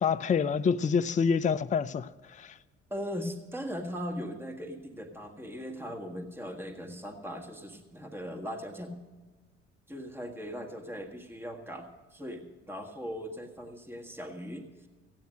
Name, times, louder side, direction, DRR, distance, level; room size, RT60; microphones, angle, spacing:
voice 1, 0.0-2.5, left 6 dB, 20° left, 0.5 m, -27 dB
voice 2, 2.9-9.0 9.9-14.7, equal, 5° right, 1.7 m, -39 dB
16.0 x 9.3 x 6.4 m
figure-of-eight pair, 50°, 35 cm